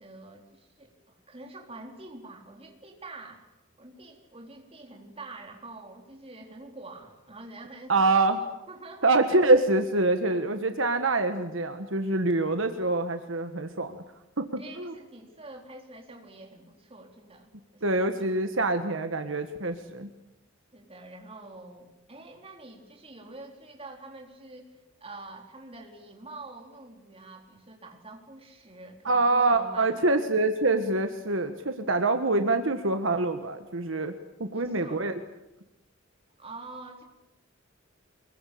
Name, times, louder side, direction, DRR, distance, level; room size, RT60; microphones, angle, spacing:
voice 1, 0.0-3.5 3.8-8.3 8.7-9.1 10.3-10.4 14.6-18.1 20.7-24.7 25.0-30.0 34.5-35.0 36.4-37.0, right 2 dB, 30° right, 2 dB, 4.2 m, -46 dB
voice 2, 7.9-8.4 9.0-14.0 14.4-14.9 17.8-20.1 29.0-34.1 34.4-35.1, right 2 dB, 70° right, 7 dB, 1.6 m, -25 dB
25.0 x 22.5 x 8.6 m, 0.94 s
head